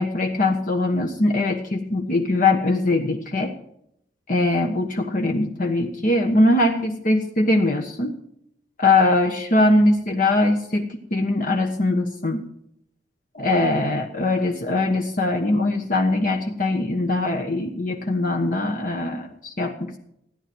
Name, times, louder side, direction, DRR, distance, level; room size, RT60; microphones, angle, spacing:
voice 1, 0.0-3.5 4.3-8.2 8.8-12.4 13.3-20.0, left 2 dB, 45° left, 3 dB, 1.2 m, -21 dB
15.0 x 10.5 x 6.2 m, 0.75 s
head